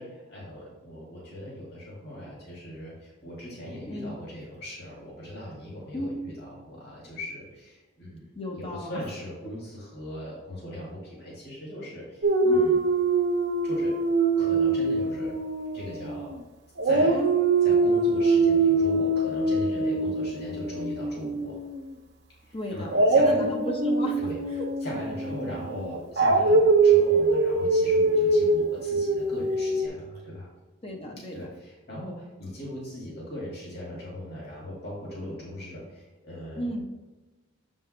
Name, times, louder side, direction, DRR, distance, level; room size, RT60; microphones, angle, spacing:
voice 1, 0.0-12.8 13.6-13.9 14.4-15.4 15.7-16.4 16.8-17.2 17.6-21.5 22.4-23.5 24.2-24.4 24.8-30.5 31.3-36.7, equal, 50° left, -5 dB, 2.2 m, -39 dB
voice 2, 8.4-8.9 12.4-12.7 17.1-17.3 22.5-24.2 24.6-24.7 30.8-31.4 36.6-36.9, equal, 25° left, 1 dB, 0.7 m, -33 dB
Dog, 12.2-16.4 16.8-21.8 22.9-29.9, right 3 dB, 55° right, 0.7 m, -23 dB
6.9 x 5.4 x 3.2 m, 1.2 s
head